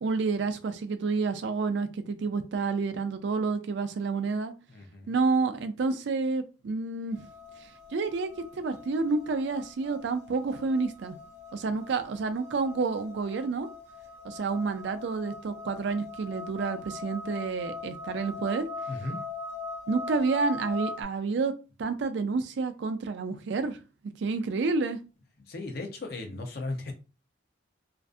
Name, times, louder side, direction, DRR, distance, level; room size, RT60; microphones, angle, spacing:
voice 1, 0.0-4.5 5.1-7.3 7.9-11.2 11.5-13.7 14.2-18.7 19.9-21.5 21.8-23.8 24.2-25.0, right 4 dB, 60° right, 0.3 m, -29 dB
voice 2, 4.7-5.1 18.9-19.2 25.5-26.9, left 2 dB, 50° left, 0.6 m, -36 dB
sound 1, 7.1-21.0, left 3 dB, 35° right, 0.8 m, -41 dB
2.5 x 2.3 x 2.4 m
head